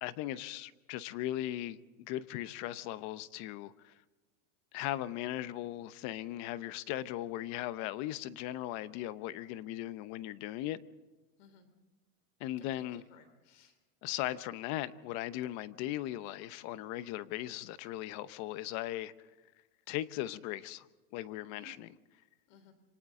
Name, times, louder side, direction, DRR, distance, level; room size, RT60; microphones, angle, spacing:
voice 1, 0.0-3.9 4.7-10.8 12.4-13.0 14.0-19.1 19.9-20.9 21.1-22.0, left 14 dB, 45° left, 0.9 m, -38 dB
voice 2, 12.6-13.7 21.5-21.8 22.5-22.7, left 3 dB, 65° left, 3.3 m, -59 dB
27.5 x 25.5 x 3.8 m
supercardioid pair, 145°, 40 cm